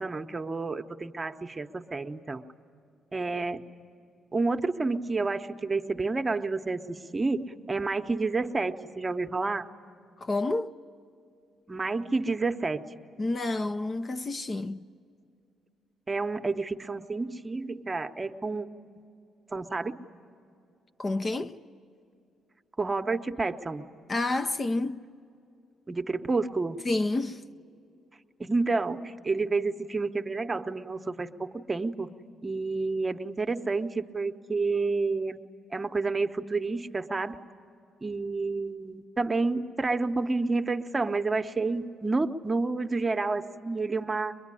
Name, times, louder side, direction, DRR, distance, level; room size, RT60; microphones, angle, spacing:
voice 1, 0.0-2.4 3.1-3.6 4.3-9.7 11.7-12.8 16.1-18.7 19.5-19.9 22.8-23.8 25.9-26.8 28.4-32.1 32.4-35.4 35.7-37.4 38.0-44.4, right 3 dB, 25° right, 0.9 m, -29 dB
voice 2, 10.2-10.7 13.2-14.8 21.0-21.6 24.1-25.0 26.8-27.4, left 2 dB, 30° left, 0.6 m, -29 dB
23.0 x 21.5 x 9.9 m
cardioid pair, 90°, 0 cm